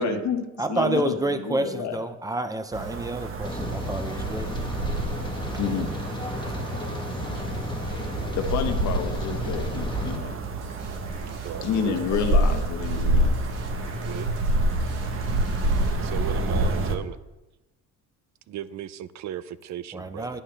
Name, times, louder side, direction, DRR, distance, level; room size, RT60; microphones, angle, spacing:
voice 1, 0.0-0.4 0.7-1.1 1.5-2.0 5.6-5.9 8.3-10.4 11.6-13.3, left 7 dB, 65° left, 5 dB, 1.2 m, -29 dB
voice 2, 0.6-4.5 19.9-20.4, right 2 dB, 10° right, 10 dB, 0.6 m, -29 dB
sound 1, 2.7-17.0, right 1 dB, 40° right, 1.0 m, -27 dB
Rain, 3.4-10.2, left 2 dB, 15° left, 1.3 m, -33 dB
sound 2, 10.4-16.2, right 1 dB, 80° right, 2.1 m, -45 dB
voice 3, 11.4-12.3 14.1-14.3 16.0-17.2 18.5-20.4, right 10 dB, 65° right, 15 dB, 0.6 m, -36 dB
10.5 x 9.6 x 3.4 m, 1.0 s
cardioid pair, 140°, 31 cm